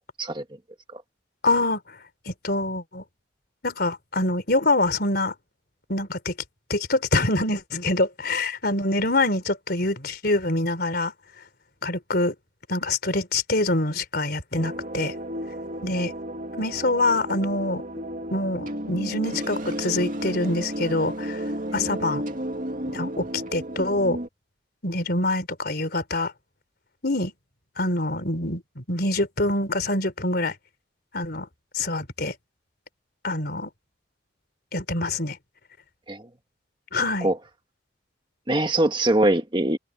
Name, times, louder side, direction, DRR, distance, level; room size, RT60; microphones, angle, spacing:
voice 1, 1.4-1.8 2.3-3.0 3.6-5.3 5.9-6.3 6.7-11.1 11.8-12.3 12.7-15.1 15.8-16.1 16.6-17.8 18.3-21.4 21.7-22.2 22.9-24.2 24.8-26.3 27.0-27.3 27.8-30.5 31.1-31.5 31.7-32.3 33.2-33.7 34.7-35.4 36.9-37.3, left 2 dB, 55° left, 4.0 m, -25 dB
sound 1, 14.5-24.3, right 1 dB, 45° right, 2.5 m, -32 dB
voice 2, 38.5-39.8, right 1 dB, 25° right, 1.6 m, -22 dB
head